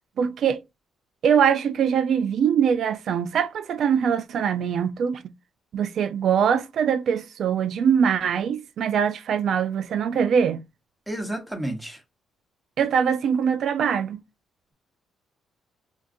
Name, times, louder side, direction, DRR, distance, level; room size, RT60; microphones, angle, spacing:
voice 1, 0.2-0.6 1.2-5.2 5.7-10.6 12.8-14.2, right 7 dB, 65° right, 0.3 m, -22 dB
voice 2, 11.1-12.0, right 1 dB, 5° right, 1.1 m, -31 dB
3.7 x 2.4 x 2.5 m
cardioid pair, 90°, 0 cm